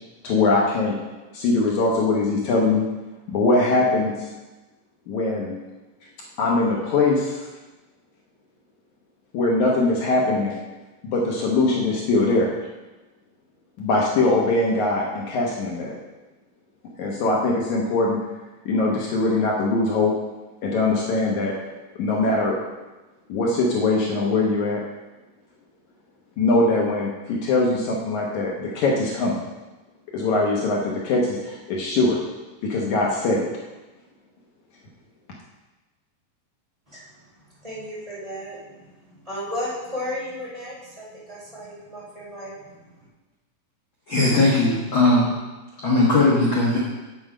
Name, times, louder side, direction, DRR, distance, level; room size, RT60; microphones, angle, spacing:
voice 1, 0.2-1.0 1.3-2.9 3.3-4.2 5.1-5.6 6.4-7.4 9.3-10.6 11.0-12.5 13.8-15.9 17.0-18.2 18.7-20.1 20.6-21.5 22.0-22.6 23.3-24.8 26.4-29.4 30.1-32.2 32.6-33.5, left 2 dB, 70° left, -3 dB, 2.3 m, -21 dB
voice 2, 37.6-38.8 39.1-42.8, left 1 dB, 10° right, -8 dB, 3.3 m, -34 dB
voice 3, 44.1-45.4 45.8-46.8, left 2 dB, 50° left, -5 dB, 1.7 m, -18 dB
7.7 x 7.7 x 4.9 m, 1.1 s
omnidirectional pair, 3.8 m